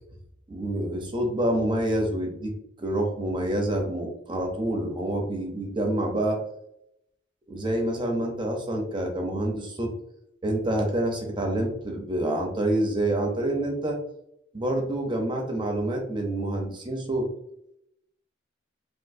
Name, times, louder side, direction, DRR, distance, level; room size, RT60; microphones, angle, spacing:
voice 1, 0.5-2.5 2.8-6.4 7.5-9.9 10.4-14.0 14.5-17.3, right 1 dB, 25° right, 1 dB, 0.6 m, -27 dB
3.6 x 2.5 x 2.6 m, 0.78 s
head